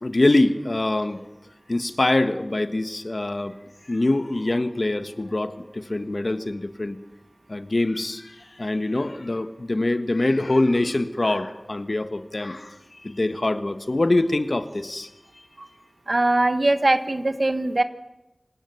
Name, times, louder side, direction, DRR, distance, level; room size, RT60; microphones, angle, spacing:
voice 1, 0.0-1.2 1.7-3.5 3.9-7.0 7.5-15.1 15.3-15.5, left 2 dB, 65° left, 10 dB, 1.4 m, -24 dB
voice 2, 16.1-17.8, right 2 dB, 65° right, 10 dB, 1.5 m, -21 dB
27.5 x 17.0 x 7.1 m, 0.96 s
wide cardioid pair, 50°, 0 cm